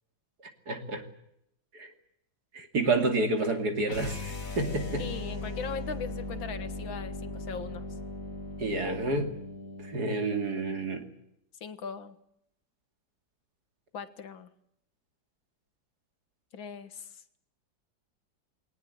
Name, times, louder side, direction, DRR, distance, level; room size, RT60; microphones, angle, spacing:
voice 1, 0.7-1.0 1.7-1.9 2.5-5.0 8.6-9.4 9.8-11.1, right 2 dB, 55° right, 6 dB, 3.1 m, -29 dB
sound 1, 3.9-10.0, left 2 dB, 45° left, 2.9 m, -38 dB
voice 2, 5.0-7.9 11.6-12.2 13.9-14.5 16.5-17.2, left 6 dB, 80° left, 11 dB, 2.4 m, -39 dB
21.5 x 18.5 x 9.4 m, 0.77 s
omnidirectional pair, 2.1 m